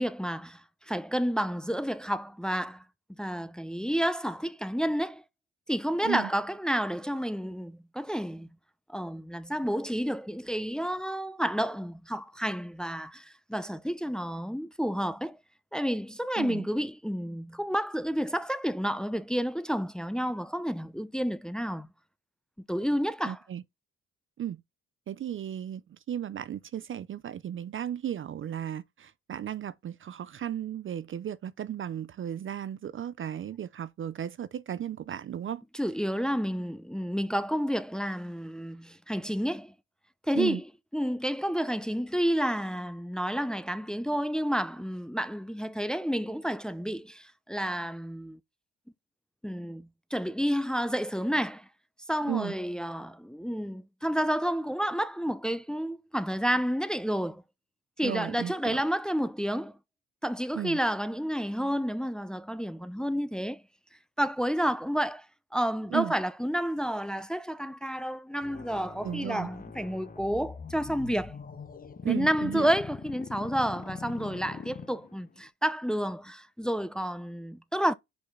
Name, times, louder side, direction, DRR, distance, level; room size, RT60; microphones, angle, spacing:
voice 1, 0.0-2.8 3.2-5.2 5.7-8.5 8.9-15.4 15.7-21.9 22.7-23.4 35.7-39.7 40.3-40.6 40.9-48.4 49.4-51.7 52.1-57.4 58.0-59.7 60.2-63.6 64.2-65.3 65.5-71.4 72.1-77.9, equal, ahead, 0.6 m, -30 dB
voice 2, 23.2-23.6 24.4-24.6 25.1-35.6 40.3-40.6 52.3-52.5 58.0-58.8 60.5-60.8 65.9-66.1 69.0-69.5 72.0-72.7, right 10 dB, 45° right, 0.5 m, -35 dB
sound 1, 68.4-75.4, left 5 dB, 30° left, 0.9 m, -43 dB
5.2 x 4.3 x 5.7 m
cardioid pair, 90°, 30 cm